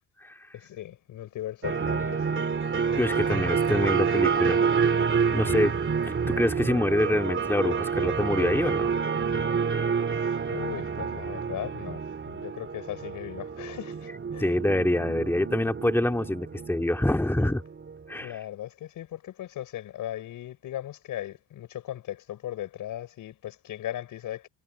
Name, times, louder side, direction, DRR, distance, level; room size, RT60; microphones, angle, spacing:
voice 1, 0.5-2.5 10.0-14.5 18.2-24.5, left 12 dB, 75° left, 5.6 m, -38 dB
sound 1, 1.6-18.0, right 6 dB, 35° right, 3.4 m, -28 dB
voice 2, 3.0-4.6 5.3-5.7 6.0-8.9 9.3-9.4 14.4-17.6 18.1-18.4, left 1 dB, 5° left, 2.4 m, -26 dB
supercardioid pair, 70°, 33 cm